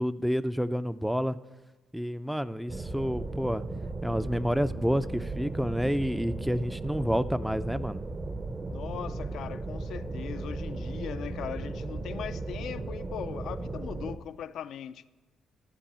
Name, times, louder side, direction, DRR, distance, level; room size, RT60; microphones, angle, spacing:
voice 1, 0.0-1.4 1.9-3.6 4.0-8.0, equal, 5° right, 0.4 m, -29 dB
sound 1, 2.7-14.2, right 2 dB, 30° right, 0.7 m, -36 dB
voice 2, 8.7-15.0, left 9 dB, 75° left, 0.4 m, -39 dB
12.0 x 4.7 x 8.5 m
cardioid pair, 90°, 0 cm